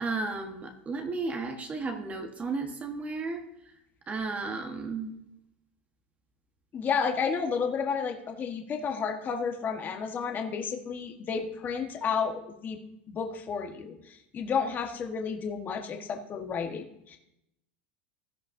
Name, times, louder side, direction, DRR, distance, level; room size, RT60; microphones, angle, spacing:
voice 1, 0.0-3.4 4.1-5.1, right 3 dB, 25° right, 4 dB, 1.3 m, -33 dB
voice 2, 6.7-12.8 13.1-17.2, left 6 dB, 30° left, 3 dB, 1.4 m, -31 dB
16.0 x 10.0 x 2.7 m, 0.80 s
supercardioid pair, 110°, 6 cm